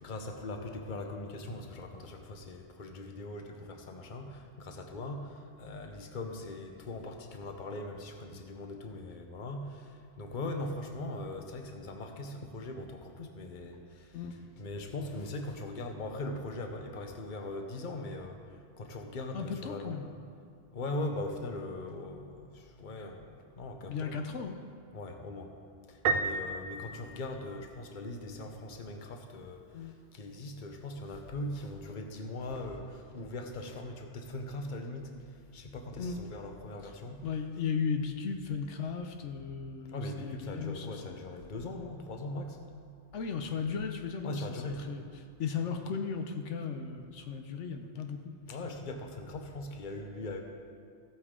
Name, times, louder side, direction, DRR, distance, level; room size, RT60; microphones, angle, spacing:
voice 1, 0.0-14.2 14.6-20.0 20.7-24.2 24.9-25.5 25.9-37.2 39.9-42.6 44.2-44.9 48.5-50.4, left 2 dB, 45° left, 4 dB, 1.0 m, -40 dB
voice 2, 19.3-20.1 23.9-24.6 29.7-29.9 36.0-36.2 36.8-36.9 37.2-41.2 43.1-45.1 45.4-48.3, left 6 dB, 80° left, 5 dB, 1.1 m, -36 dB
Piano, 26.0-27.9, right 4 dB, 60° right, 0.7 m, -32 dB
15.5 x 8.3 x 3.7 m, 2.3 s
omnidirectional pair, 1.2 m